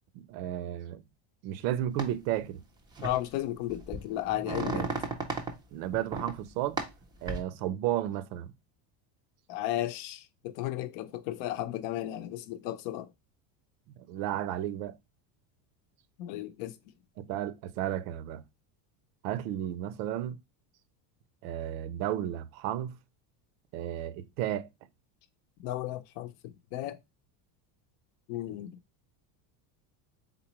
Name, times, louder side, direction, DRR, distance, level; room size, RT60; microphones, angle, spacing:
voice 1, 0.1-1.0 1.4-2.6 4.7-4.9 5.7-6.8 7.2-8.5 14.1-15.0 17.2-18.4 19.2-20.4 21.4-23.0 23.7-24.7, right 12 dB, 90° right, 0.7 m, -33 dB
sound 1, 2.0-2.1 3.0-3.2 3.7-5.5 5.9-6.3 6.8-7.4, right 3 dB, 10° right, 0.3 m, -34 dB
voice 2, 3.0-4.9 9.5-13.1 16.2-16.8 25.6-27.0 28.3-28.8, left 13 dB, 65° left, 0.6 m, -34 dB
4.0 x 3.8 x 2.9 m
cardioid pair, 150°, 48 cm